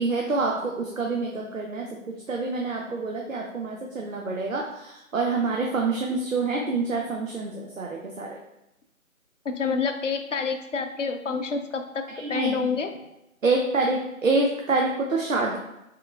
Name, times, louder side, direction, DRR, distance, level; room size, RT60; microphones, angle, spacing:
voice 1, 0.0-8.4 12.1-12.7 13.4-15.6, right 3 dB, 65° right, 0 dB, 0.7 m, -27 dB
voice 2, 9.4-12.0 12.3-12.9, left 5 dB, 60° left, 6 dB, 0.5 m, -28 dB
3.7 x 2.9 x 3.3 m, 0.90 s
figure-of-eight pair, 165°, 42 cm